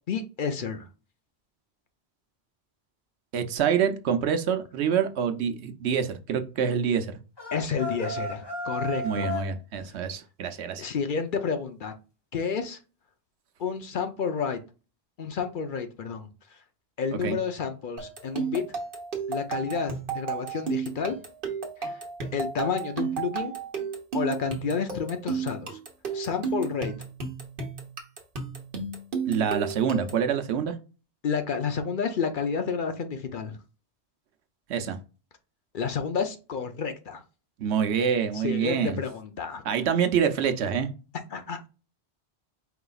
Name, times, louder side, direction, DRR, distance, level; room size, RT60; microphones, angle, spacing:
voice 1, 0.1-0.9 7.5-9.3 10.8-11.9 12.3-12.8 13.6-14.6 15.2-16.3 17.0-18.6 19.3-21.2 21.8-22.0 22.3-23.5 24.1-25.8 26.1-26.9 31.2-33.6 35.7-37.2 38.3-39.6 41.3-41.7, left 6 dB, 55° left, 7 dB, 0.7 m, -30 dB
voice 2, 3.3-7.1 9.0-10.8 17.2-17.4 29.3-30.7 34.7-35.0 37.6-39.0 39.6-40.9, right 7 dB, 80° right, 8 dB, 1.0 m, -26 dB
sound 1, 7.4-9.5, left 1 dB, 25° left, 1.0 m, -33 dB
sound 2, 18.0-30.3, right 5 dB, 55° right, 1.2 m, -33 dB
4.9 x 3.8 x 2.3 m, 0.32 s
omnidirectional pair, 1.1 m